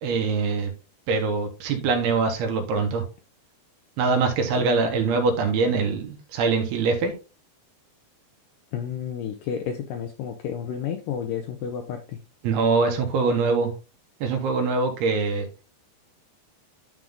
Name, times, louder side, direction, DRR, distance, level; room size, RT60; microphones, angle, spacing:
voice 1, 0.0-0.7 1.1-3.0 4.0-7.1 12.4-13.7 14.2-15.5, right 4 dB, 80° right, 3.2 m, -23 dB
voice 2, 8.7-12.2, left 8 dB, 80° left, 2.0 m, -31 dB
10.5 x 3.8 x 3.6 m
omnidirectional pair, 4.6 m